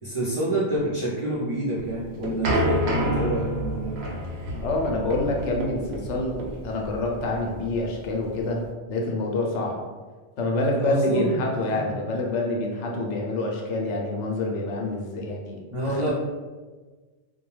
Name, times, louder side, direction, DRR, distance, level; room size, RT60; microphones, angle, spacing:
voice 1, 0.0-4.0 10.8-11.3 11.7-11.9 15.7-16.1, right 1 dB, 40° right, -10 dB, 0.5 m, -28 dB
sound 1, 1.8-8.7, equal, 70° right, 0.8 m, -29 dB
voice 2, 4.6-8.6 8.9-9.8 10.4-16.0, left 2 dB, 85° left, 0 dB, 0.9 m, -27 dB
2.2 x 2.2 x 3.1 m, 1.3 s
omnidirectional pair, 1.2 m